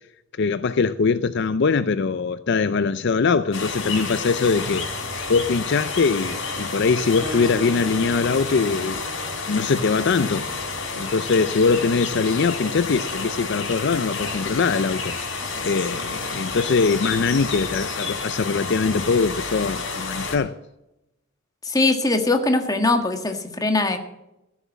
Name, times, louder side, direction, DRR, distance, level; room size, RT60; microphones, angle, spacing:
voice 1, 0.4-4.9 5.3-9.0 9.5-10.5 10.9-15.1 15.6-20.5, left 4 dB, 60° left, 0.5 m, -22 dB
sound 1, 3.5-20.4, left 4 dB, 85° left, 3.6 m, -30 dB
Guitar, 7.2-10.9, right 2 dB, 15° right, 0.9 m, -38 dB
voice 2, 21.6-24.0, left 2 dB, 20° left, 1.5 m, -21 dB
15.0 x 7.2 x 7.2 m
head